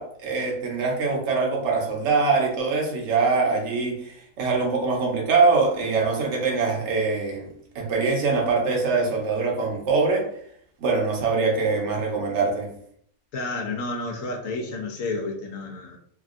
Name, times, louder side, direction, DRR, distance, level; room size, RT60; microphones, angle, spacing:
voice 1, 0.0-10.3 10.8-12.7, right 4 dB, 60° right, 1.0 m, -23 dB
voice 2, 13.3-16.0, left 3 dB, 75° left, 1.0 m, -30 dB
3.4 x 2.2 x 2.4 m
omnidirectional pair, 1.5 m